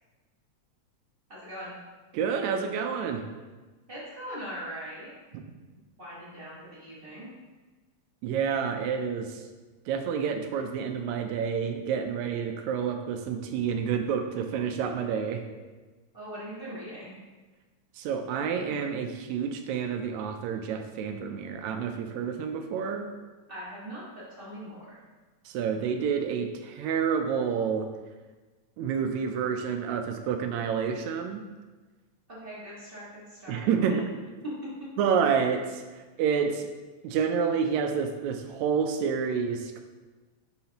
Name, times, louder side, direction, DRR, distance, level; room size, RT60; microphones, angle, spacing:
voice 1, 1.3-1.7 3.9-5.1 6.0-7.3 16.1-17.2 23.5-25.0 32.3-34.0, equal, 30° right, -8 dB, 1.2 m, -41 dB
voice 2, 2.1-3.2 5.3-5.4 8.2-9.4 9.9-15.4 18.0-23.1 25.5-27.9 28.8-31.4 33.5-33.9 35.0-35.8 36.2-36.7 37.0-39.8, right 6 dB, 80° right, 6 dB, 1.8 m, -29 dB
6.4 x 5.7 x 2.9 m, 1.3 s
omnidirectional pair, 3.3 m